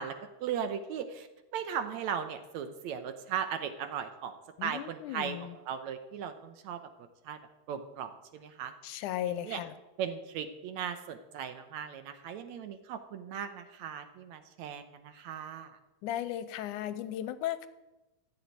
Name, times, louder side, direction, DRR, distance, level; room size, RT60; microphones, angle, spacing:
voice 1, 0.0-4.3 4.6-6.8 7.3-7.4 7.7-8.7 9.2-9.6 10.0-15.8, right 8 dB, 70° right, 8 dB, 2.1 m, -37 dB
voice 2, 4.6-5.6 8.8-9.7 16.0-17.7, left 12 dB, 85° left, 13 dB, 2.1 m, -36 dB
14.0 x 7.3 x 9.5 m, 1.0 s
omnidirectional pair, 3.6 m